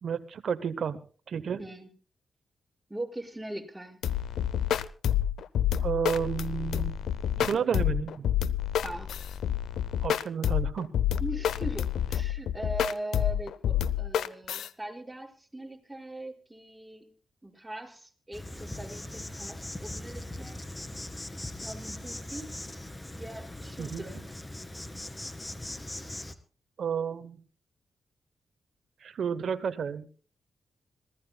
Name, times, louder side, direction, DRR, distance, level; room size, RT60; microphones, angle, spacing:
voice 1, 0.0-1.0 1.3-1.6 5.8-6.9 7.4-8.3 10.0-10.9 23.8-24.0 26.8-27.4 29.0-30.1, right 7 dB, 70° right, 11 dB, 0.9 m, -31 dB
voice 2, 1.6-1.9 2.9-4.0 8.8-9.1 11.2-17.1 17.4-20.6 21.6-22.5 23.2-24.2, right 1 dB, 10° right, 1 dB, 5.2 m, -40 dB
sound 1, 4.0-14.7, left 10 dB, 80° left, 0.6 m, -28 dB
Insect, 18.3-26.3, left 1 dB, 20° left, 2.0 m, -40 dB
26.5 x 16.0 x 2.3 m, 0.38 s
supercardioid pair, 45°, 0 cm